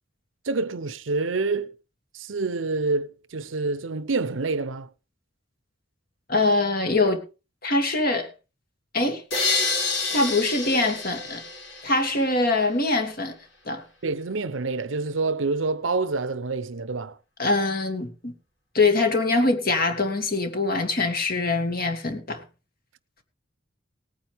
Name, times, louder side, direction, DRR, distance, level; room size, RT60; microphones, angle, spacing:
voice 1, 0.4-1.7 2.1-4.9 14.0-17.2, right 3 dB, 85° right, 0.8 m, -27 dB
voice 2, 6.3-7.2 7.6-8.3 8.9-9.2 10.1-11.4 11.8-13.3 13.7-13.8 17.4-18.3 18.7-22.4, left 2 dB, 50° left, 2.4 m, -23 dB
sound 1, 9.3-12.3, left 3 dB, 90° left, 5.0 m, -28 dB
19.0 x 9.3 x 3.5 m
head